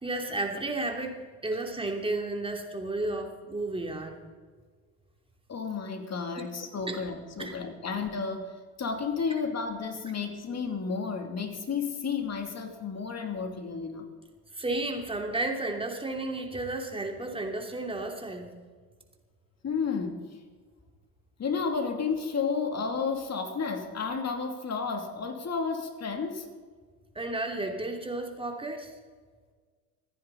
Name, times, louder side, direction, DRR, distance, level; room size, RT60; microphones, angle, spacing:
voice 1, 0.0-4.2 6.4-6.5 6.9-7.0 7.4-7.6 14.5-18.5 27.1-28.9, right 2 dB, 10° right, 2 dB, 3.0 m, -32 dB
voice 2, 5.5-14.1 19.6-20.4 21.4-26.5, left 5 dB, 35° left, 5 dB, 2.8 m, -32 dB
26.5 x 10.0 x 4.1 m, 1.5 s
hypercardioid pair, 80°, 47 cm